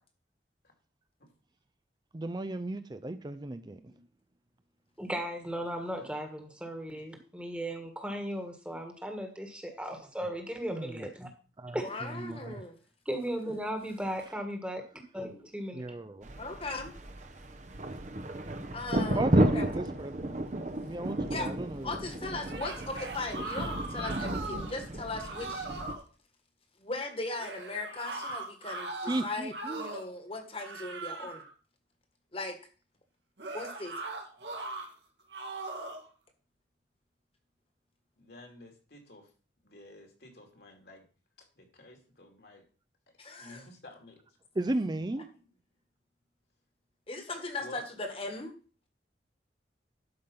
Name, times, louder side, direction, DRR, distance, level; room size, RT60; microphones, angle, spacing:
voice 1, 2.1-3.9 10.7-11.1 11.6-12.6 15.7-16.3 19.1-20.4 20.8-22.0 29.1-29.9 44.5-45.3, right 2 dB, 25° right, 0.5 m, -35 dB
voice 2, 5.0-11.3 11.7-11.9 13.0-14.8 15.1-15.8, equal, 5° right, 1.4 m, -36 dB
voice 3, 11.7-12.7 16.4-16.9 18.7-19.7 21.3-21.5 21.8-25.7 26.8-31.4 32.3-32.6 33.5-34.0 43.2-43.7 47.1-48.5, left 2 dB, 30° left, 1.7 m, -38 dB
sound 1, 16.2-25.9, right 1 dB, 40° right, 0.8 m, -33 dB
sound 2, 22.3-24.8 25.1-26.0 27.4-30.1 30.5-31.5 33.4-34.9 35.3-36.1, right 2 dB, 80° right, 2.0 m, -40 dB
voice 4, 38.2-39.3 39.6-41.0 41.4-42.6 43.1-44.2 47.6-47.9, left 1 dB, 65° left, 2.7 m, -51 dB
12.0 x 5.2 x 5.5 m
head